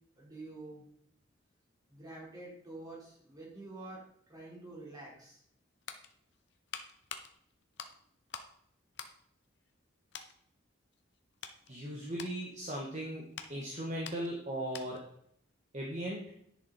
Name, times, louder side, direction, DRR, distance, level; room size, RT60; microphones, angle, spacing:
voice 1, 0.2-0.8 1.9-5.4, right 2 dB, 20° right, -5 dB, 4.5 m, -48 dB
sound 1, 5.4-8.6 8.9-9.8 10.1-10.4 10.9-15.2 15.4-15.6, left 7 dB, 60° left, 1.0 m, -48 dB
voice 2, 11.7-15.0 15.7-16.3, right 1 dB, 35° right, -2 dB, 1.8 m, -38 dB
10.5 x 8.2 x 4.5 m, 0.68 s
head